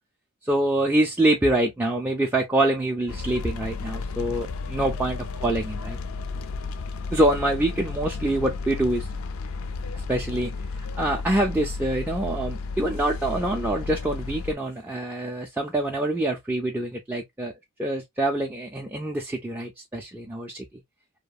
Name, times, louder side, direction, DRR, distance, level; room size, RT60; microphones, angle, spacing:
voice 1, 0.4-6.0 7.1-9.1 9.9-17.5 17.8-20.7, right 1 dB, 10° right, 0.3 m, -25 dB
sound 1, 3.1-14.5, left 4 dB, 70° left, 0.4 m, -33 dB
2.8 x 2.3 x 2.3 m
head